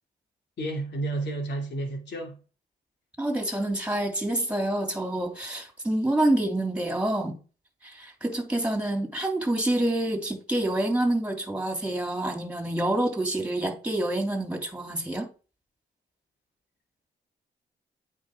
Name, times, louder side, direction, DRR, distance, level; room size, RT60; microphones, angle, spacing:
voice 1, 0.6-2.4, right 2 dB, 65° left, 3.0 m, -31 dB
voice 2, 3.2-7.4 7.8-15.3, right 1 dB, 5° right, 3.2 m, -27 dB
8.8 x 5.0 x 5.0 m
cardioid pair, 60°, 19 cm